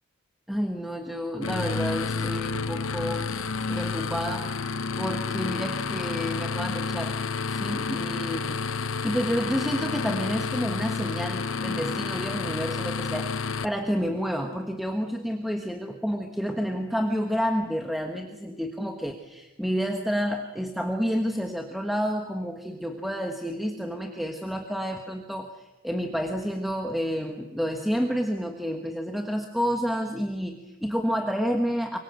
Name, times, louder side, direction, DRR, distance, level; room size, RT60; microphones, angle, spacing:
voice 1, 0.5-3.3 3.7-4.5 4.9-7.2 7.5-8.6 9.0-32.0, equal, ahead, 3 dB, 1.3 m, -29 dB
sound 1, 1.4-13.7, left 4 dB, 75° left, 1.0 m, -30 dB
25.0 x 22.0 x 8.0 m, 1.1 s
head